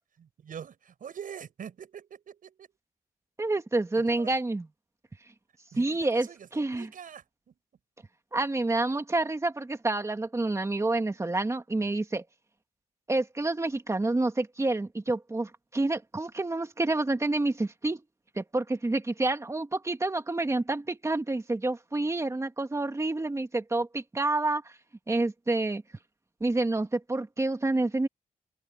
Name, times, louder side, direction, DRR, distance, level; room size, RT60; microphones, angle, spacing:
voice 1, 0.4-2.7 3.9-4.3 5.7-7.5, right 8 dB, 80° right, 7.8 m, -44 dB
voice 2, 3.4-4.7 5.8-6.3 6.5-6.9 8.3-12.2 13.1-18.0 18.4-24.7 25.1-25.8 26.4-28.1, right 2 dB, 20° right, 2.0 m, -28 dB
wide cardioid pair, 125°, 14 cm